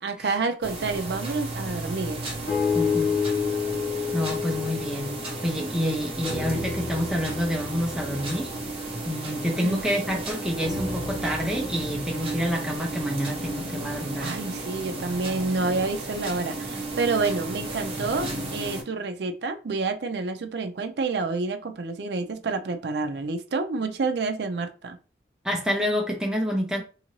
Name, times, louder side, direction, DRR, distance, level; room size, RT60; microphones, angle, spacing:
voice 1, 0.0-2.2 9.6-9.8 14.2-25.0, right 3 dB, 70° right, 0.5 m, -28 dB
sound 1, 0.6-18.8, right 2 dB, 30° right, 0.9 m, -34 dB
sound 2, 2.5-5.8 6.2-10.0 10.6-14.8 15.5-15.6, left 5 dB, 50° left, 0.8 m, -31 dB
voice 2, 2.7-3.1 4.1-8.5 9.0-14.4 25.4-26.8, equal, 5° right, 0.5 m, -28 dB
2.8 x 2.6 x 3.0 m
head